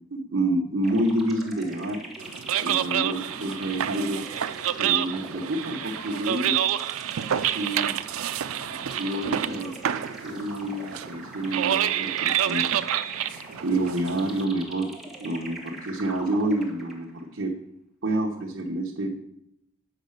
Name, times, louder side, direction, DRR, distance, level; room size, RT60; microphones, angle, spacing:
voice 1, 0.1-2.0 2.6-4.2 4.8-6.5 7.3-7.9 8.9-9.7 10.2-12.6 13.6-14.9 15.2-17.5 18.0-19.1, right 1 dB, 65° right, -3 dB, 1.1 m, -28 dB
sound 1, 0.8-17.2, right 1 dB, ahead, 1.4 m, -43 dB
sound 2, 2.2-14.4, right 10 dB, 85° right, 0.4 m, -28 dB
8.0 x 5.7 x 6.6 m, 0.80 s
head